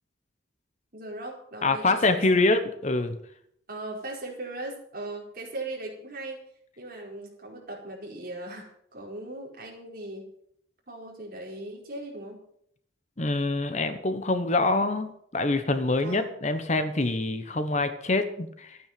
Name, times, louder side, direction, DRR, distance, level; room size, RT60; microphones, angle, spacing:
voice 1, 0.9-2.6 3.7-6.4 6.8-10.3 10.9-12.4 16.0-16.3, right 2 dB, 50° right, -1 dB, 4.7 m, -39 dB
voice 2, 1.6-3.2 13.2-18.8, left 2 dB, 35° left, 9 dB, 1.0 m, -25 dB
13.5 x 9.2 x 7.6 m, 0.69 s
head